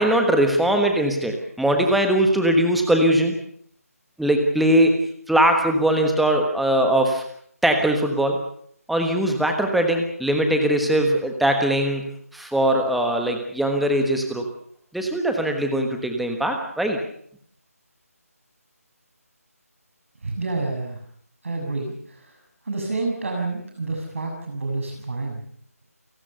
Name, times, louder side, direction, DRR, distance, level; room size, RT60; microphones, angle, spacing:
voice 1, 0.0-3.4 4.2-5.0 5.3-7.2 7.6-8.4 8.9-14.5 14.9-17.0, right 1 dB, ahead, 4 dB, 1.3 m, -21 dB
voice 2, 20.2-21.0 21.4-25.4, right 3 dB, 55° right, 2 dB, 7.0 m, -29 dB
29.0 x 17.5 x 6.9 m, 0.64 s
figure-of-eight pair, 175°, 8 cm